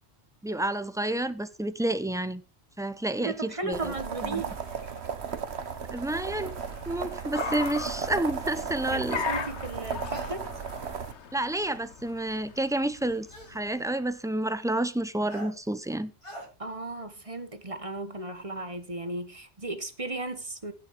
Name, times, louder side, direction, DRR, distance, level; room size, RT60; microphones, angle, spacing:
voice 1, 0.4-2.4 2.8-3.9 4.3-4.4 5.9-6.5 6.9-9.2 11.3-16.1, right 1 dB, 5° right, 0.8 m, -30 dB
voice 2, 3.2-4.5 7.3-7.4 8.9-10.4 16.6-20.7, right 2 dB, 30° right, 1.6 m, -35 dB
sound 1, 3.7-11.1, right 6 dB, 65° right, 1.4 m, -35 dB
Car, 4.1-14.0, left 6 dB, 75° left, 1.4 m, -40 dB
sound 2, 7.3-7.6 10.1-10.4 11.6-11.7 13.3-13.6 15.3-15.5 16.2-16.5, equal, 25° left, 4.4 m, -42 dB
16.5 x 7.1 x 4.7 m
omnidirectional pair, 1.2 m